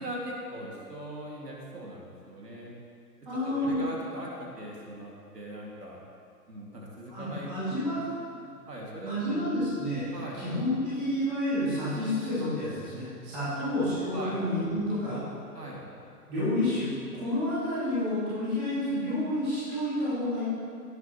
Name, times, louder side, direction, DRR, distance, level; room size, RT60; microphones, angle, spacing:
voice 1, 0.0-2.7 3.4-6.0 6.5-8.1 8.7-9.4 10.1-10.4 13.4-13.6 14.1-14.4 15.5-15.8, right 1 dB, 90° right, -3 dB, 2.6 m, -40 dB
voice 2, 3.3-3.8 7.1-8.0 9.1-10.1 10.3-15.2 16.3-20.4, left 1 dB, ahead, -12 dB, 0.4 m, -29 dB
15.5 x 7.3 x 3.2 m, 2.4 s
figure-of-eight pair, 130°, 47 cm